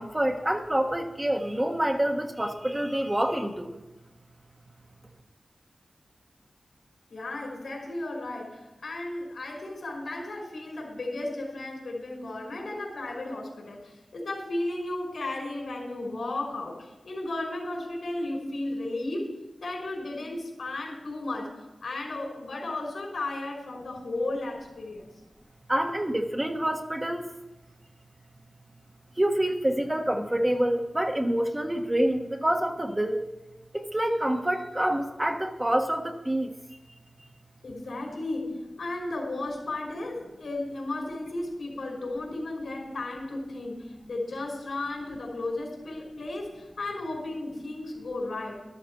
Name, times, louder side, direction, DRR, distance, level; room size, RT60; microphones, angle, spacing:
voice 1, 0.0-3.7 25.7-27.2 29.2-33.2 33.9-36.5, right 1 dB, 20° right, 3 dB, 1.4 m, -27 dB
voice 2, 7.1-21.5 21.8-25.1 37.6-48.6, left 2 dB, 85° left, 0 dB, 4.9 m, -34 dB
12.5 x 12.5 x 4.6 m, 1.0 s
wide cardioid pair, 65°, 0 cm